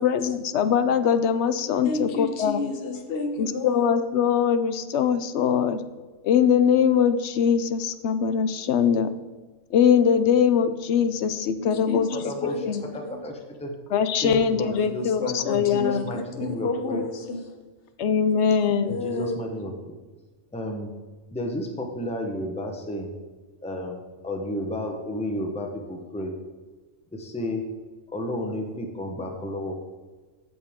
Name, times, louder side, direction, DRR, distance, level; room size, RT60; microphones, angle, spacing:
voice 1, 0.0-2.6 3.4-5.8 6.2-9.1 9.7-12.8 13.9-16.1 18.0-18.9, left 7 dB, 65° left, 11 dB, 0.9 m, -22 dB
voice 2, 1.8-3.9 11.6-12.6 13.0-13.2 14.7-17.4 18.6-19.5, left 3 dB, 50° left, 6 dB, 1.2 m, -31 dB
voice 3, 12.1-12.6 12.9-13.7 14.2-17.0 18.9-20.0 20.5-20.9 21.3-23.1 23.6-26.3 27.1-27.6 28.1-29.7, left 1 dB, 5° left, 3 dB, 0.9 m, -32 dB
14.5 x 5.3 x 3.6 m, 1.3 s
omnidirectional pair, 1.3 m